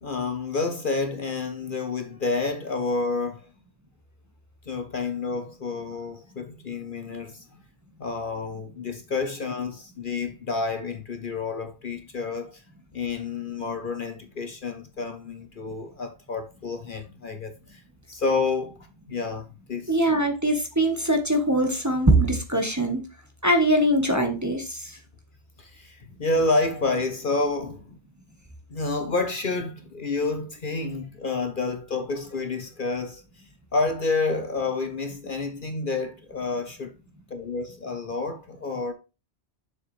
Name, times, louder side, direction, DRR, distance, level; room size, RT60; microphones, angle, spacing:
voice 1, 0.0-3.5 4.7-7.5 8.0-12.6 12.9-17.8 18.1-18.8 19.1-20.0 25.6-28.0 28.7-33.2 33.7-36.9 37.3-38.9, left 3 dB, 50° left, 1.0 m, -29 dB
voice 2, 19.9-23.0 23.4-25.0, right 1 dB, 15° right, 1.3 m, -22 dB
7.0 x 6.8 x 3.2 m
omnidirectional pair, 1.2 m